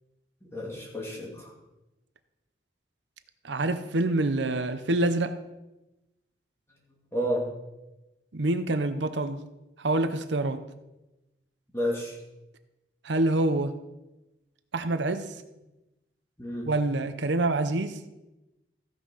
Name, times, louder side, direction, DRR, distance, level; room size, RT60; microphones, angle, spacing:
voice 1, 0.4-1.5 7.1-7.5 11.7-12.2 16.4-16.7, equal, 15° left, -4 dB, 2.7 m, -31 dB
voice 2, 3.4-5.3 8.3-9.4 9.8-10.6 13.0-13.7 14.7-15.3 16.7-18.0, right 2 dB, 80° right, 10 dB, 0.8 m, -26 dB
15.0 x 6.2 x 5.5 m, 0.99 s
head